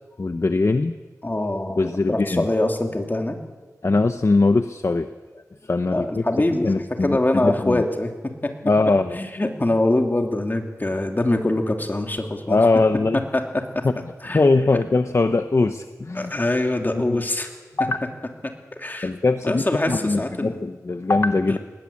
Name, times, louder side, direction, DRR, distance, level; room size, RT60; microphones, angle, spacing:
voice 1, 0.2-1.0 1.8-2.5 3.8-5.1 5.6-6.1 6.6-7.8 8.6-9.2 12.5-13.2 13.8-13.9 14.3-16.3 16.9-17.2 17.8-18.0 19.0-21.6, left 3 dB, 50° left, 9 dB, 0.8 m, -21 dB
voice 2, 1.2-3.4 5.9-6.7 7.0-8.1 8.4-8.5 9.1-12.6 13.3-13.6 14.2-14.4 16.1-17.5 18.8-19.1 19.4-20.6 21.5-21.6, left 1 dB, 30° left, 3 dB, 2.8 m, -23 dB
20.5 x 19.0 x 8.7 m, 1.3 s
wide cardioid pair, 70°, 6 cm